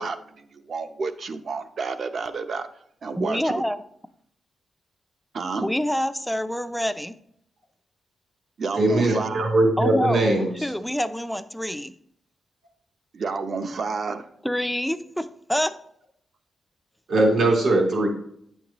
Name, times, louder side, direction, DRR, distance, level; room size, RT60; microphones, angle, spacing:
voice 1, 0.0-2.7 3.0-3.6 5.3-5.7 8.6-9.5 13.1-14.3, right 4 dB, 45° right, 9 dB, 0.6 m, -30 dB
voice 2, 3.2-3.8 5.6-7.2 9.8-10.2 10.6-11.9 14.4-15.7, equal, ahead, 10 dB, 0.4 m, -26 dB
voice 3, 8.8-10.7 17.1-18.1, right 2 dB, 65° right, 0 dB, 2.8 m, -20 dB
9.3 x 7.3 x 2.9 m, 0.69 s
wide cardioid pair, 160°, 0 cm